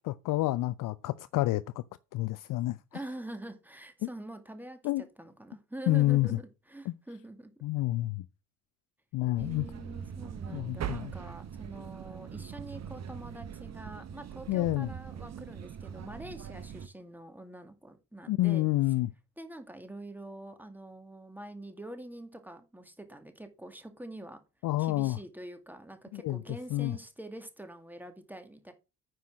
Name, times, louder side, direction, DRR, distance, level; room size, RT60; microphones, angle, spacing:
voice 1, 0.1-1.8 2.1-2.8 4.8-5.0 5.9-6.3 6.9-7.0 7.6-8.2 9.1-9.7 10.5-11.1 14.5-14.9 18.3-19.1 24.6-25.2 26.1-26.4 26.7-26.9, left 17 dB, 45° left, 0.6 m, -28 dB
voice 2, 2.9-7.5 9.4-18.9 19.4-24.4 24.8-28.7, right 1 dB, 5° right, 2.3 m, -45 dB
sound 1, 9.3-16.9, right 8 dB, 35° right, 1.1 m, -42 dB
9.3 x 6.2 x 6.2 m
figure-of-eight pair, 55°, 45 cm